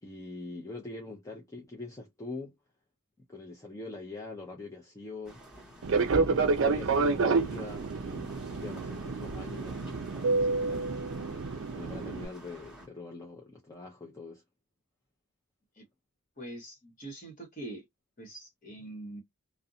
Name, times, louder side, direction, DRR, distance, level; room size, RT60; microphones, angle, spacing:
voice 1, 0.0-2.6 3.3-5.4 5.9-11.0 11.7-14.4, left 3 dB, 15° left, 0.4 m, -44 dB
sound 1, 5.2-12.9, equal, ahead, 1.1 m, -46 dB
Fixed-wing aircraft airplane, 5.8-12.2, right 4 dB, 60° right, 0.4 m, -29 dB
voice 2, 16.4-17.8 18.2-19.2, right 2 dB, 35° left, 1.0 m, -43 dB
2.5 x 2.1 x 2.7 m
head